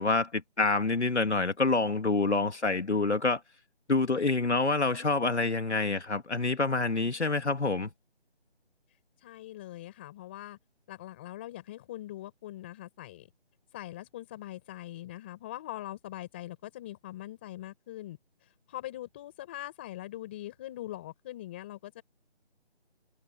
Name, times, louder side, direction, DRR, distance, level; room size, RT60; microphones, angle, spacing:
voice 1, 0.0-3.4 3.9-7.9, left 3 dB, 85° left, 3.1 m, -27 dB
voice 2, 9.2-10.6 10.9-13.3 13.7-18.2 18.7-22.0, left 14 dB, 10° left, 5.5 m, -42 dB
figure-of-eight pair, 175°, 33 cm